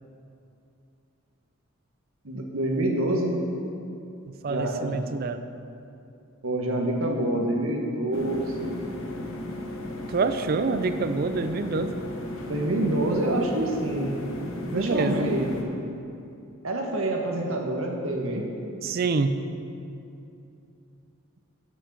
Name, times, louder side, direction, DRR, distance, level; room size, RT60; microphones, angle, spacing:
voice 1, 2.2-3.4 4.5-5.0 6.4-8.7 12.5-14.1 14.7-15.5 16.6-18.4, right 1 dB, 75° right, 1 dB, 1.2 m, -26 dB
voice 2, 4.3-5.5 10.1-11.9 14.7-15.3 18.8-19.4, right 4 dB, 45° right, 10 dB, 0.4 m, -27 dB
sound 1, 8.1-15.6, left 1 dB, 70° left, 1.0 m, -35 dB
6.4 x 6.1 x 7.4 m, 2.7 s
head